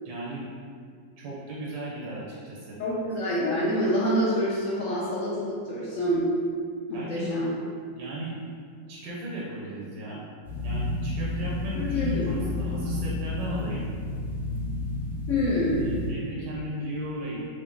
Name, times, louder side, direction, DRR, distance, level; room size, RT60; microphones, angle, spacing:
voice 1, 0.0-0.5 1.2-2.8 6.9-7.3 7.9-8.3 8.9-10.2 10.6-13.8 15.7-17.4, right 1 dB, 75° right, -6 dB, 1.3 m, -36 dB
voice 2, 2.8-6.3 6.9-7.5 11.7-12.4 15.3-15.8, equal, 75° left, -7 dB, 0.7 m, -26 dB
sound 1, 10.4-16.1, left 2 dB, ahead, 0.8 m, -31 dB
3.8 x 2.7 x 3.6 m, 2.1 s
omnidirectional pair, 2.0 m